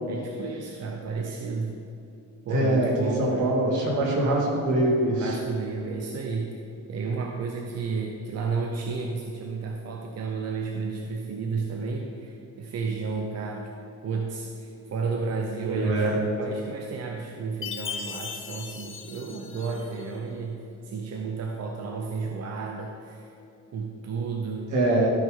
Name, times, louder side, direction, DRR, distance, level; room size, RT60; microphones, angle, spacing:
voice 1, 0.1-1.7 2.5-3.5 5.1-6.6 6.9-13.7 14.0-20.6 20.8-23.3 23.7-25.1, right 4 dB, 55° right, 1 dB, 0.8 m, -32 dB
voice 2, 2.5-5.4 15.6-16.2 24.7-25.1, right 1 dB, 80° right, -2 dB, 2.0 m, -24 dB
Chime, 17.6-20.1, left 6 dB, 40° left, 0.8 m, -37 dB
13.5 x 5.2 x 3.8 m, 2.6 s
cardioid pair, 90°, 30 cm